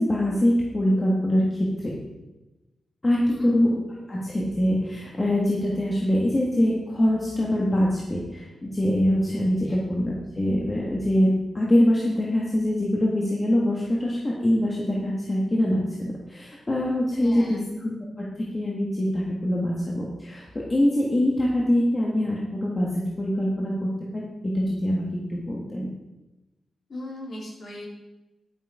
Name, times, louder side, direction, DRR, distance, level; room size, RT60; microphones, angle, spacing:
voice 1, 0.0-1.9 3.0-3.7 4.1-25.9, left 1 dB, 20° left, -4 dB, 1.7 m, -24 dB
voice 2, 17.2-17.6 26.9-27.9, left 1 dB, 45° left, -4 dB, 4.1 m, -38 dB
11.0 x 8.0 x 4.9 m, 1.0 s
wide cardioid pair, 150°, 0 cm